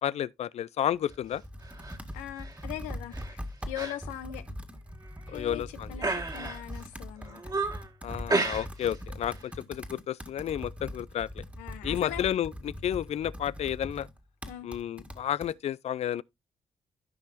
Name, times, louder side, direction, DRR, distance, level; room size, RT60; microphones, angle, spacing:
voice 1, 0.0-1.4 5.3-6.0 8.0-11.4 11.8-14.1 14.6-16.2, left 10 dB, 60° left, 0.4 m, -31 dB
Computer keyboard, 0.9-15.5, equal, 10° right, 1.8 m, -42 dB
sound 1, 1.6-2.0 2.4-2.6 3.1-3.3 3.7-4.0 4.3-4.4 5.0-5.5 6.0-6.8 7.2-7.9 8.3-9.0 9.2-9.5, right 3 dB, 30° right, 1.9 m, -32 dB
voice 2, 2.1-4.4 5.3-5.6 5.9-7.4 11.6-12.3 14.5-14.7, left 12 dB, 90° left, 0.8 m, -40 dB
14.5 x 5.4 x 2.7 m
supercardioid pair, 50°, 12 cm